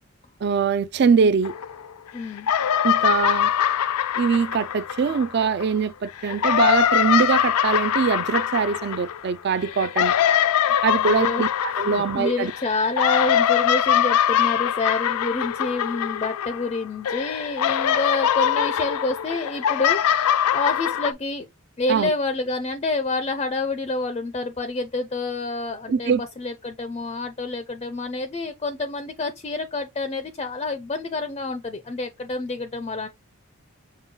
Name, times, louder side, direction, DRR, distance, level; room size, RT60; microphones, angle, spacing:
voice 1, 0.4-1.5 2.8-3.5 4.2-10.1 10.8-12.5 21.9-22.1 25.9-26.2, right 6 dB, 50° right, 0.3 m, -22 dB
sound 1, 1.4-2.1 2.4-5.7 6.2-16.8 17.1-21.1, left 10 dB, 90° left, 0.4 m, -23 dB
voice 2, 2.1-2.5 6.6-6.7 11.0-21.5 21.8-33.1, left 3 dB, 25° left, 0.4 m, -28 dB
5.4 x 2.3 x 3.6 m
head